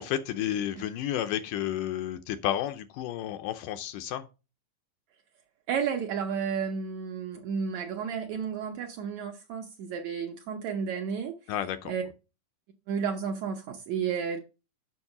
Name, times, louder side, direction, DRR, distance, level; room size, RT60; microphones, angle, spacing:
voice 1, 0.0-4.2 11.5-11.9, left 11 dB, 80° left, 2.0 m, -31 dB
voice 2, 5.7-11.3 11.8-12.0 12.9-14.4, right 6 dB, 75° right, 1.7 m, -32 dB
7.1 x 6.2 x 4.8 m
omnidirectional pair, 4.0 m